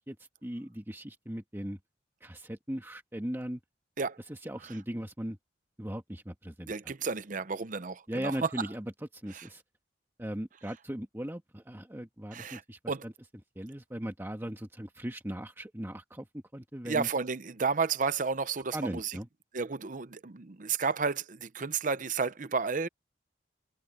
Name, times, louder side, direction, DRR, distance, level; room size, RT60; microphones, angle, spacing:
voice 1, 0.4-1.8 2.2-3.6 4.3-5.4 5.8-6.7 8.1-8.8 9.1-9.6 10.2-13.1 13.5-16.3 16.5-17.1 18.7-19.3, equal, 15° right, 1.5 m, -38 dB
voice 2, 6.7-8.7 9.3-9.5 12.3-12.6 12.9-13.1 16.8-19.2 19.5-22.9, right 5 dB, 45° right, 0.7 m, -32 dB
head